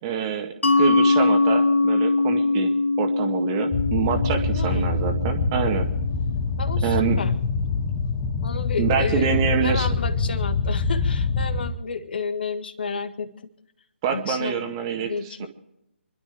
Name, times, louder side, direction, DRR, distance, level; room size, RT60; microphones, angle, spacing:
voice 1, 0.0-2.7 3.0-5.9 6.8-7.2 8.8-9.9 14.0-15.5, right 8 dB, 25° right, 5 dB, 1.8 m, -26 dB
Mallet percussion, 0.6-6.0, left 3 dB, 75° left, 1.2 m, -22 dB
sound 1, 3.7-11.7, left 4 dB, 25° left, 1.2 m, -25 dB
voice 2, 4.5-4.9 6.6-7.3 8.4-9.4 9.6-13.3 14.1-14.6 14.9-15.5, left 5 dB, 50° left, 9 dB, 1.8 m, -31 dB
27.5 x 12.0 x 3.5 m, 0.83 s
figure-of-eight pair, 145°, 7 cm